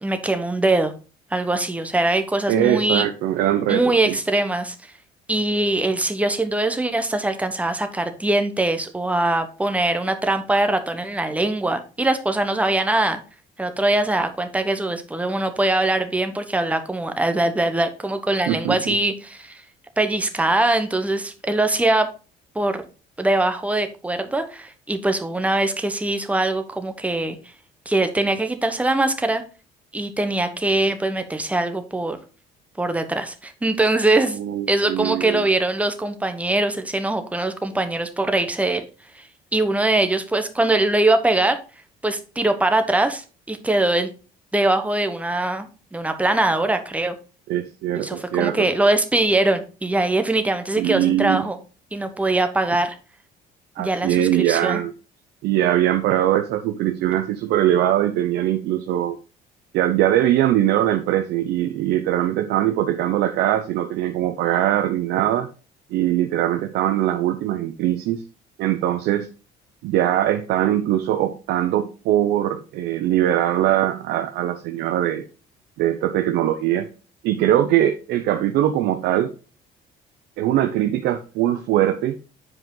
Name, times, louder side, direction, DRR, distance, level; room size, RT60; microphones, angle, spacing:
voice 1, 0.0-0.9 1.3-3.1 3.7-4.7 5.3-13.2 13.6-19.6 20.0-22.1 22.5-22.8 23.2-27.4 27.9-29.4 29.9-32.2 32.8-34.4 34.7-38.8 39.1-41.6 42.0-44.1 44.5-47.1 48.0-51.6 51.9-53.0 53.8-54.8, right 2 dB, 10° right, 1.0 m, -22 dB
voice 2, 2.5-4.2 18.5-19.0 34.3-35.4 47.5-48.7 50.8-51.5 53.8-54.9 55.4-59.2 59.7-65.5 65.9-68.2 68.6-69.3 69.8-75.2 75.8-76.9 77.2-79.3 80.4-82.2, right 12 dB, 80° right, 0.6 m, -21 dB
7.6 x 4.9 x 3.8 m
cardioid pair, 110°, 17 cm